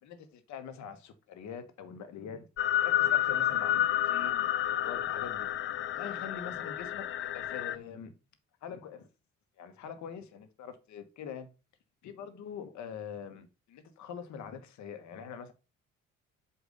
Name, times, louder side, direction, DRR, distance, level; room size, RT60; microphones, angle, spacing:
voice 1, 0.0-2.5 2.8-5.5 5.9-8.1 8.6-9.1 9.6-11.5 12.0-15.5, left 7 dB, 50° left, 1.2 m, -44 dB
sound 1, 2.6-7.7, left 12 dB, 35° left, 0.5 m, -30 dB
8.1 x 2.7 x 5.1 m
figure-of-eight pair, 50°, 37 cm